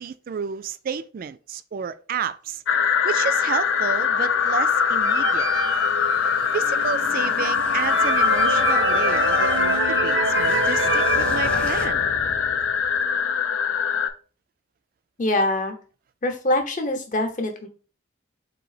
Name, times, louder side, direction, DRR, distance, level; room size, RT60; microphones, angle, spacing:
voice 1, 0.0-2.6 3.0-5.5 6.5-12.1, right 6 dB, 45° right, 0.3 m, -31 dB
sound 1, 2.7-14.1, left 6 dB, 85° left, 0.5 m, -22 dB
sound 2, 3.8-13.1, equal, 5° left, 0.6 m, -39 dB
sound 3, 5.0-6.7 7.2-7.3 7.7-12.2, right 3 dB, 80° right, 0.7 m, -26 dB
voice 2, 15.2-15.7 16.2-17.7, left 1 dB, 40° left, 0.8 m, -24 dB
3.9 x 2.7 x 4.8 m
head